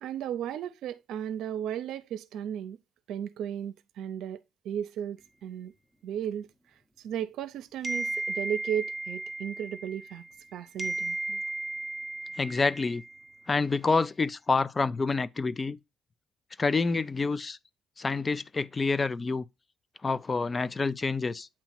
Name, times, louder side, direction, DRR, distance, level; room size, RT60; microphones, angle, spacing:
voice 1, 0.0-2.8 3.1-5.7 6.0-6.5 7.0-10.2 10.5-11.2, right 9 dB, 80° right, 0.6 m, -35 dB
sound 1, 7.8-10.5 10.8-13.4, right 2 dB, ahead, 0.8 m, -35 dB
voice 2, 12.3-13.0 13.5-15.8 16.6-17.6 18.0-19.5 20.0-21.5, left 4 dB, 30° left, 0.4 m, -27 dB
8.5 x 2.9 x 4.3 m
cardioid pair, 90°, 0 cm